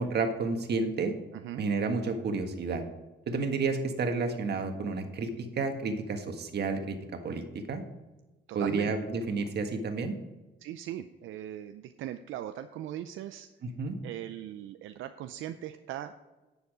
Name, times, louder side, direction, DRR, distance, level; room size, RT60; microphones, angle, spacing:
voice 1, 0.0-1.1 1.6-2.8 3.3-7.0 7.2-7.8 8.5-10.2 13.6-14.0, right 4 dB, 55° right, 6 dB, 1.6 m, -31 dB
voice 2, 1.3-1.7 8.5-8.9 10.6-13.5 14.0-16.1, right 11 dB, 85° right, 9 dB, 0.5 m, -39 dB
10.5 x 7.1 x 5.0 m, 1.1 s
cardioid pair, 90°, 20 cm